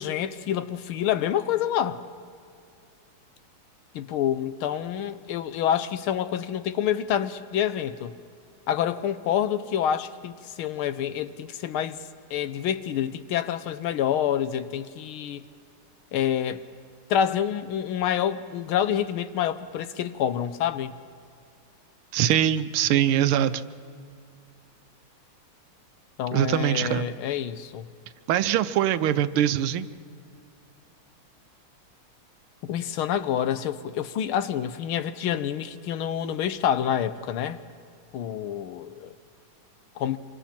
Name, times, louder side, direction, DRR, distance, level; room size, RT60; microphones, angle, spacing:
voice 1, 0.0-2.0 3.9-8.1 8.7-12.0 12.3-15.4 16.1-16.6 17.1-20.9 26.2-27.9 32.6-37.6 38.1-39.1 40.0-40.2, left 9 dB, 80° left, 12 dB, 1.6 m, -27 dB
voice 2, 22.1-23.6 26.3-27.1 28.3-29.9, right 11 dB, 80° right, 13 dB, 1.6 m, -23 dB
26.5 x 24.0 x 4.3 m, 2.4 s
omnidirectional pair, 2.3 m